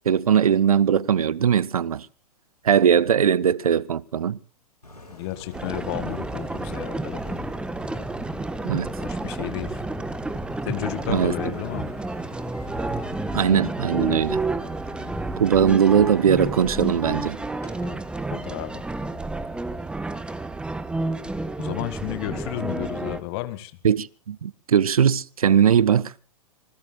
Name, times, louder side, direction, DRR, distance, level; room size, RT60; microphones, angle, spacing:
voice 1, 0.1-2.1 2.6-4.4 8.6-8.9 11.1-11.3 13.3-14.4 15.4-17.4 23.8-26.1, right 8 dB, 70° right, 0.7 m, -20 dB
Engine, 4.8-19.8, left 2 dB, 85° left, 6.9 m, -46 dB
voice 2, 5.1-7.4 9.0-9.8 10.6-11.9 18.3-18.8 21.6-23.7, left 16 dB, 40° left, 2.0 m, -32 dB
sound 1, 5.5-23.2, right 2 dB, 5° right, 0.9 m, -30 dB
26.5 x 19.5 x 2.4 m
figure-of-eight pair, 105°, 20 cm